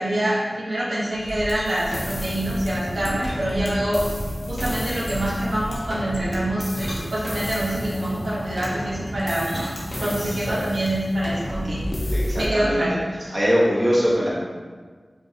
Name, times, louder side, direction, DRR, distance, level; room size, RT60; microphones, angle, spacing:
voice 1, 0.0-4.0 4.5-9.7 10.0-11.8 12.4-13.3, right 1 dB, 75° right, -7 dB, 0.7 m, -25 dB
sound 1, 1.1-1.8 3.3-4.2 4.9-5.3 6.4-7.8 9.3-10.6, equal, ahead, 1.1 m, -40 dB
Mechanisms, 1.2-11.6, equal, 80° left, 1.0 m, -36 dB
sound 2, 1.6-12.5, equal, 45° left, 0.7 m, -32 dB
voice 2, 10.0-10.6 12.1-12.8 13.3-14.3, equal, 30° right, -7 dB, 1.1 m, -23 dB
5.1 x 2.5 x 2.7 m, 1.5 s
wide cardioid pair, 70°, 0 cm